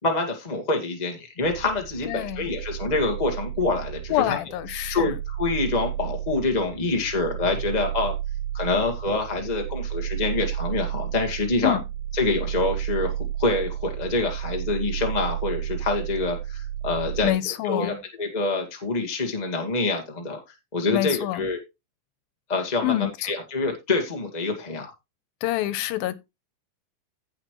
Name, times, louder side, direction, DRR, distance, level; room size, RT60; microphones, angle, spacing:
voice 1, 0.0-4.4 4.9-8.1 8.5-11.8 12.2-13.1 13.4-17.3 17.6-20.4 20.7-21.6 22.5-24.9, left 3 dB, 20° left, 1.1 m, -26 dB
sound 1, 1.4-17.3, right 11 dB, 70° right, 2.6 m, -32 dB
voice 2, 2.1-2.5 4.1-5.2 11.6-11.8 17.2-18.0 20.9-21.5 22.8-23.3 25.4-26.2, left 15 dB, 85° left, 2.7 m, -26 dB
16.0 x 5.8 x 3.2 m
omnidirectional pair, 4.1 m